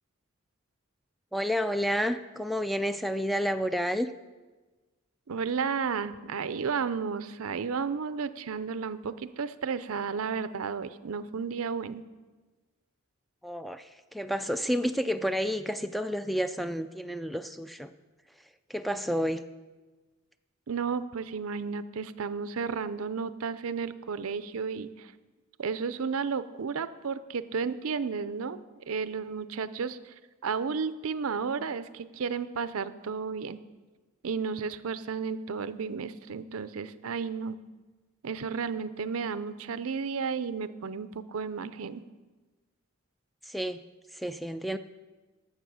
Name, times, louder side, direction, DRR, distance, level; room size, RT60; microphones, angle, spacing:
voice 1, 1.3-4.1 13.4-17.9 18.7-19.4 43.4-43.8 44.1-44.8, equal, ahead, 10 dB, 0.3 m, -30 dB
voice 2, 5.3-12.0 20.7-25.1 25.6-28.6 28.9-30.1 30.4-33.6 34.2-37.6 38.2-42.0, right 5 dB, 75° right, 14 dB, 0.5 m, -33 dB
12.0 x 7.4 x 6.2 m, 1.3 s
head